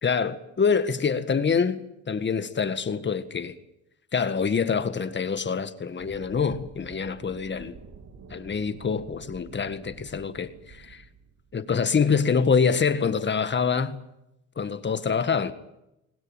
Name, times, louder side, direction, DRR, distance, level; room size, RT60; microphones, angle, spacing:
voice 1, 0.0-3.5 4.1-7.8 8.3-11.0 11.5-14.0 14.6-15.5, left 6 dB, 35° left, 1.8 m, -25 dB
sound 1, 6.0-12.3, right 5 dB, 60° right, 3.1 m, -48 dB
21.0 x 20.0 x 9.0 m
cardioid pair, 90°, 30 cm